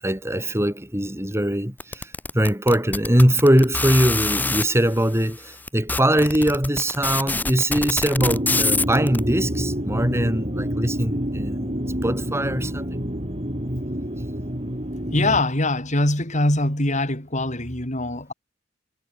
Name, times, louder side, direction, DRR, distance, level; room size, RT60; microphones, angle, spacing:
voice 1, 0.0-11.7 12.0-13.0, right 1 dB, 15° right, 6.5 m, -22 dB
sound 1, 1.8-4.6 5.3-5.4 5.7-9.2, left 3 dB, 10° left, 0.7 m, -25 dB
sound 2, 8.2-15.4, equal, 35° right, 7.8 m, -27 dB
voice 2, 15.1-18.3, left 2 dB, 40° left, 7.1 m, -23 dB
head